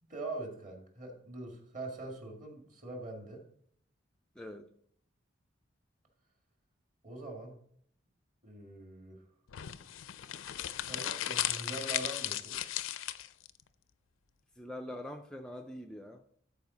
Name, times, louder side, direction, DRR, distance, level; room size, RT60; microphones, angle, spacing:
voice 1, 0.0-3.4 7.0-7.6 8.4-9.2 10.9-12.6, right 2 dB, 40° right, 1 dB, 1.9 m, -43 dB
voice 2, 4.4-4.7 14.6-16.2, left 1 dB, 5° left, 4 dB, 0.3 m, -44 dB
sound 1, 9.5-13.5, left 12 dB, 85° left, 0.4 m, -36 dB
12.5 x 4.8 x 3.9 m, 0.65 s
head